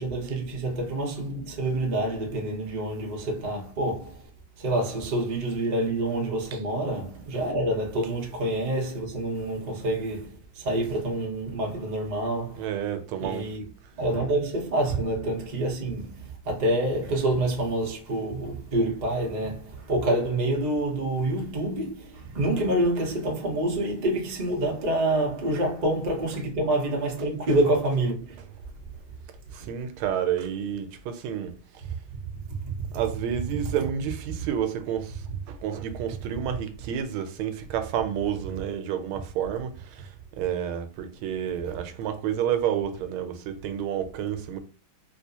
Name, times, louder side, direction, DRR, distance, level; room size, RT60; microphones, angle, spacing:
voice 1, 0.0-4.3 4.6-12.6 13.2-13.7 14.0-28.5 32.8-33.0 35.3-35.4, right 1 dB, 65° right, 0.4 m, -27 dB
voice 2, 12.5-13.5 26.3-26.4 27.2-27.6 29.5-31.5 32.9-44.6, right 9 dB, 85° right, 1.4 m, -30 dB
3.3 x 2.9 x 2.7 m
omnidirectional pair, 2.3 m